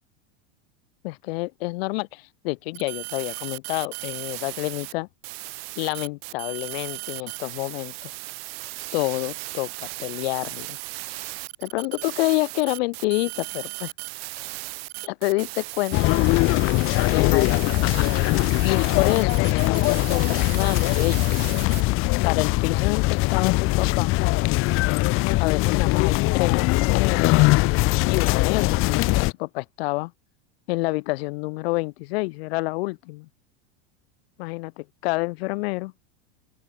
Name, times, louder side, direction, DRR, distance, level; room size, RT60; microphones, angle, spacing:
voice 1, 1.0-5.1 5.8-8.1 8.9-10.8 11.2-13.9 14.3-14.5 15.0-16.6 17.1-17.5 17.9-18.3 18.6-21.2 22.2-24.1 25.4-27.3 28.1-30.1 30.7-33.3 34.4-35.9, left 23 dB, 65° left, 3.2 m, -28 dB
sound 1, 2.7-4.9 5.2-21.8, right 25 dB, 65° right, 6.0 m, -36 dB
sound 2, 15.9-29.3, left 22 dB, 40° left, 1.0 m, -21 dB
open air
supercardioid pair, 145°, 32 cm